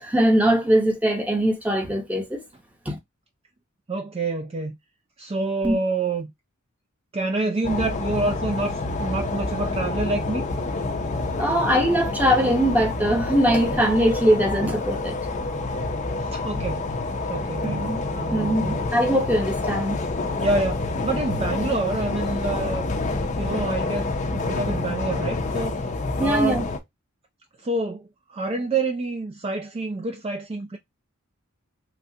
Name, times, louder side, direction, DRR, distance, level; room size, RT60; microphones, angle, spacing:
voice 1, 0.0-2.4 2.9-3.0 5.6-5.8 11.4-15.2 17.6-18.0 18.3-20.0 26.2-26.6, equal, 5° right, 0.8 m, -21 dB
voice 2, 3.9-4.7 5.2-6.3 7.1-10.4 16.2-16.9 17.3-18.8 20.4-22.9 23.4-26.6 27.6-30.8, right 3 dB, 25° right, 0.4 m, -27 dB
sound 1, 7.6-26.8, left 3 dB, 35° left, 0.5 m, -28 dB
3.2 x 2.4 x 2.6 m
head